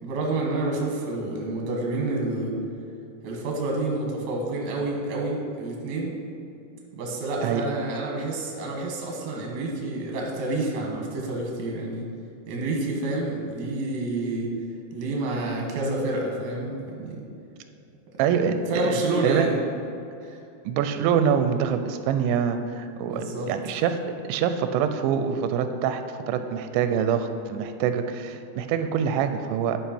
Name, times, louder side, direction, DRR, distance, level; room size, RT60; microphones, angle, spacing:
voice 1, 0.0-2.5 3.2-6.1 6.9-12.0 12.5-14.5 14.9-17.2 18.7-19.6 20.2-20.4 23.0-23.5, right 2 dB, 65° right, -1 dB, 1.9 m, -28 dB
voice 2, 18.2-19.5 20.7-24.0 24.3-29.8, right 7 dB, 90° right, 8 dB, 2.9 m, -25 dB
11.0 x 5.4 x 4.4 m, 2.7 s
omnidirectional pair, 5.2 m